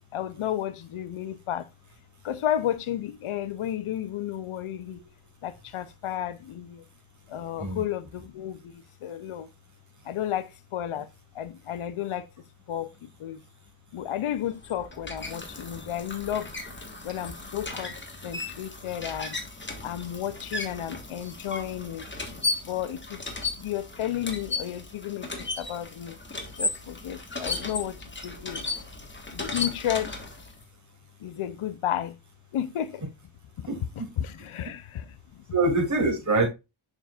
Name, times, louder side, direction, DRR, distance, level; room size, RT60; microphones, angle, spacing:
voice 1, 0.1-1.7 2.2-5.0 5.4-6.8 7.3-9.5 10.0-11.1 11.3-12.3 12.7-13.4 13.9-16.5 17.0-18.0 18.2-19.4 19.8-22.1 22.6-23.2 23.6-26.2 26.6-28.7 29.3-30.1 31.2-32.2 32.5-33.0 33.6-33.7 34.2-35.4, left 11 dB, 85° left, 0.7 m, -32 dB
sound 1, 14.4-30.6, left 3 dB, 20° left, 1.5 m, -35 dB
voice 2, 33.7-34.1 35.5-36.5, right 2 dB, 35° right, 2.8 m, -25 dB
7.1 x 5.8 x 2.4 m
wide cardioid pair, 105°, 49 cm